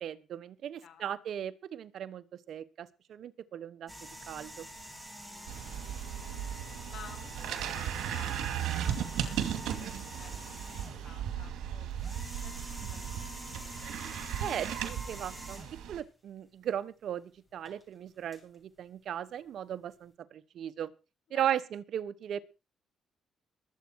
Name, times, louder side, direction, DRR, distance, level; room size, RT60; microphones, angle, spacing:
voice 1, 0.0-3.9 4.3-4.7 14.4-20.9 21.3-22.4, right 10 dB, 65° right, 14 dB, 1.1 m, -37 dB
voice 2, 0.8-1.2 5.3-5.6 5.9-6.4 6.9-13.3 13.6-14.0 21.3-21.7, left 8 dB, 70° left, 8 dB, 4.1 m, -55 dB
sound 1, 3.9-11.2 11.9-15.9 17.7-17.8 18.3-18.4, equal, ahead, 6.7 m, -46 dB
sound 2, 5.5-16.0, right 9 dB, 85° right, 2.4 m, -36 dB
22.0 x 8.4 x 4.7 m, 0.32 s
cardioid pair, 90°, 0 cm